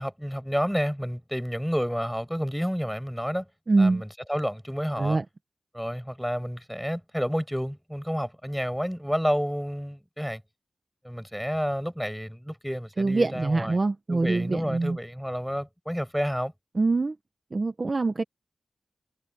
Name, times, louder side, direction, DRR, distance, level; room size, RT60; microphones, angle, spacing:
voice 1, 0.0-3.5 3.8-5.2 5.7-10.4 11.0-13.8 14.1-16.5, equal, ahead, 5.8 m, -30 dB
voice 2, 3.7-4.0 5.0-5.2 13.0-15.0 16.7-17.1 17.5-18.2, right 3 dB, 35° right, 1.1 m, -24 dB
wide cardioid pair, 155°, 0 cm